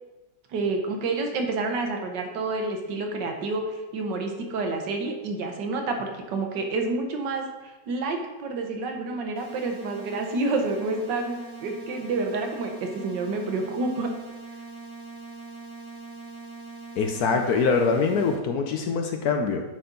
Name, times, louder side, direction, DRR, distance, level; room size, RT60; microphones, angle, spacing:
voice 1, 0.5-3.6 3.9-7.5 7.9-14.1 17.3-17.4, right 3 dB, 75° right, 3 dB, 1.5 m, -29 dB
sound 1, 9.4-18.4, right 4 dB, 55° right, 1.7 m, -42 dB
voice 2, 17.0-19.6, left 5 dB, 70° left, 4 dB, 1.0 m, -24 dB
9.1 x 4.3 x 3.8 m, 1.2 s
omnidirectional pair, 2.0 m